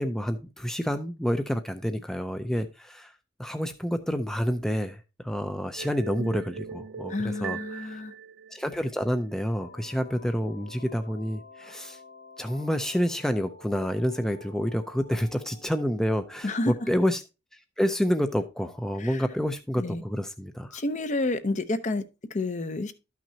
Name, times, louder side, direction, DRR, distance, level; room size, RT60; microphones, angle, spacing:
voice 1, 0.0-3.1 3.4-8.0 8.5-12.0 12.4-17.2 17.8-20.8, equal, 5° left, 0.5 m, -28 dB
sound 1, 5.8-9.1, right 6 dB, 70° right, 0.4 m, -39 dB
voice 2, 7.1-8.1 16.4-16.7 19.0-19.2 19.8-20.0 20.7-22.0 22.3-22.9, left 2 dB, 40° left, 0.7 m, -29 dB
sound 2, 9.5-17.1, left 2 dB, 65° left, 2.6 m, -50 dB
12.0 x 6.0 x 2.7 m
head